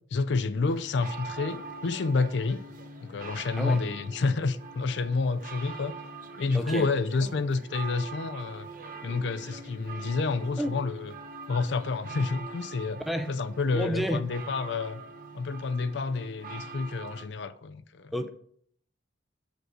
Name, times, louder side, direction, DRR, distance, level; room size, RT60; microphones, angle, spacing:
voice 1, 0.1-2.6 3.0-6.0 6.4-8.7 9.0-11.1 11.5-13.0 13.3-15.0 15.3-18.1, left 4 dB, 65° left, 0.4 m, -29 dB
sound 1, 0.7-17.3, right 4 dB, 45° right, 1.0 m, -43 dB
voice 2, 6.5-6.9 10.6-10.8 13.1-13.4 13.7-14.3 18.1-18.3, equal, ahead, 0.5 m, -30 dB
7.8 x 5.2 x 4.9 m
head